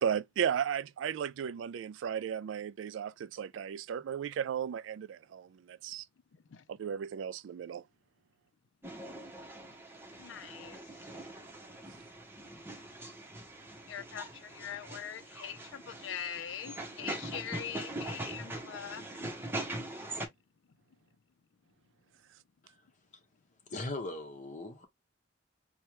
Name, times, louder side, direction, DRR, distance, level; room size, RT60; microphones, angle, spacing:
voice 1, 0.0-6.0 6.7-7.8, right 8 dB, 85° right, 0.3 m, -35 dB
voice 2, 6.3-6.7 10.2-10.8 11.2-11.3 13.9-19.0, left 9 dB, 75° left, 0.4 m, -42 dB
sound 1, 8.8-20.3, right 1 dB, 10° right, 0.8 m, -42 dB
voice 3, 23.7-24.9, left 2 dB, 45° left, 1.0 m, -39 dB
4.4 x 2.2 x 3.0 m
head